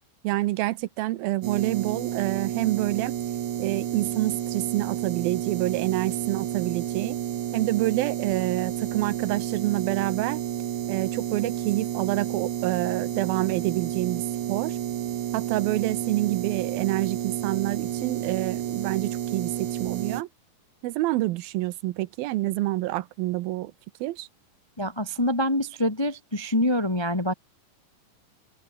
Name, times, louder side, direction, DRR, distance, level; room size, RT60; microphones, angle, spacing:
voice 1, 0.2-3.1 3.6-7.2 7.5-10.4 10.9-14.8 15.3-20.3 20.8-23.7 24.0-24.3, right 17 dB, 80° right, 2.6 m, -27 dB
sound 1, 1.4-20.2, right 11 dB, 60° right, 2.7 m, -31 dB
voice 2, 24.8-27.3, equal, 20° left, 0.6 m, -25 dB
open air
omnidirectional pair, 4.3 m